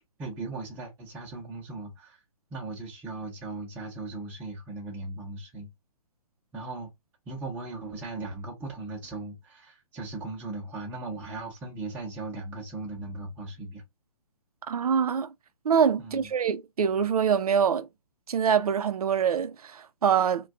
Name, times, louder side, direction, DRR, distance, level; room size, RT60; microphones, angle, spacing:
voice 1, 0.2-2.2 2.5-5.7 6.5-6.9 7.3-13.8 16.0-16.3, right 2 dB, 10° right, 0.6 m, -38 dB
voice 2, 14.7-15.3 15.6-17.9 18.3-20.5, right 7 dB, 85° right, 0.5 m, -24 dB
2.5 x 2.2 x 3.4 m
hypercardioid pair, 155°, 19 cm